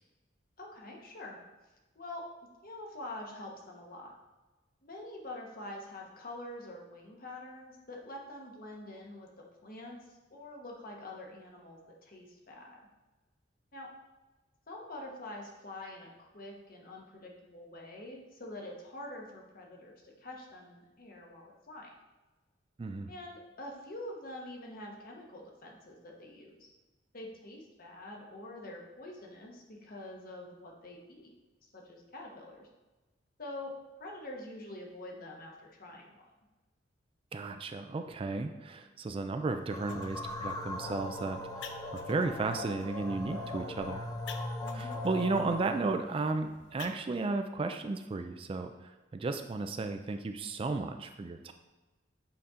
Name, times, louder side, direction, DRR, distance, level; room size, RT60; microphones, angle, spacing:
voice 1, 0.6-1.4 1.9-2.2 2.6-4.1 4.8-9.3 9.6-12.8 13.7-13.9 14.7-21.9 23.1-26.7 27.1-31.3 31.6-32.7 33.4-33.7 34.0-36.2 44.6-45.0, left 1 dB, 50° left, -1 dB, 1.2 m, -46 dB
voice 2, 22.8-23.1 37.3-44.0 44.7-51.5, right 3 dB, 30° right, 7 dB, 0.3 m, -34 dB
sound 1, 39.5-47.0, left 6 dB, 70° left, 0.5 m, -53 dB
sound 2, 39.7-45.9, left 2 dB, 20° left, 0.5 m, -39 dB
7.7 x 4.2 x 3.7 m, 1.2 s
head